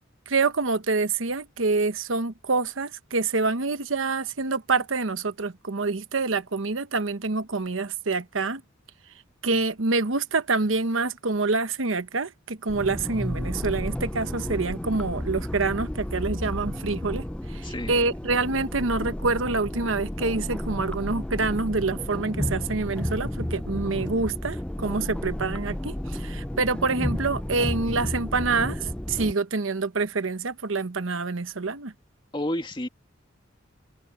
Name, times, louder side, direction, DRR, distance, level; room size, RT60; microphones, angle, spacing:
voice 1, 0.3-8.6 9.4-31.9, right 3 dB, 85° right, 1.1 m, -27 dB
sound 1, 12.7-29.3, left 1 dB, 5° left, 0.4 m, -32 dB
voice 2, 17.6-18.0 32.3-32.9, left 1 dB, 25° left, 2.2 m, -30 dB
head